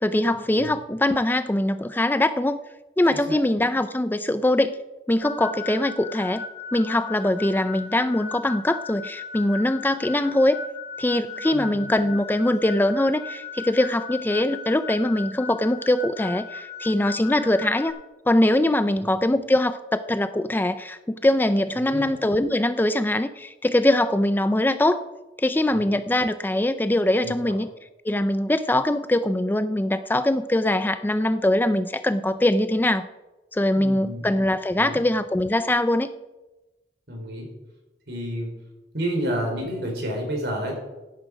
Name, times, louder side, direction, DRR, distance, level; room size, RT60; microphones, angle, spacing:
voice 1, 0.0-2.6 3.0-4.7 5.1-6.4 6.7-10.6 11.0-17.9 18.3-25.0 25.4-27.7 28.1-33.1 33.5-36.1, left 1 dB, 10° left, 12 dB, 0.4 m, -22 dB
sound 1, 5.2-17.9, left 5 dB, 70° left, 4.8 m, -37 dB
voice 2, 21.7-22.1 25.7-25.8 27.2-27.6 33.7-34.3 34.8-35.0 37.1-37.5 38.1-38.6 38.9-40.8, equal, 65° right, 1 dB, 4.7 m, -30 dB
16.0 x 9.9 x 5.0 m, 1.1 s
head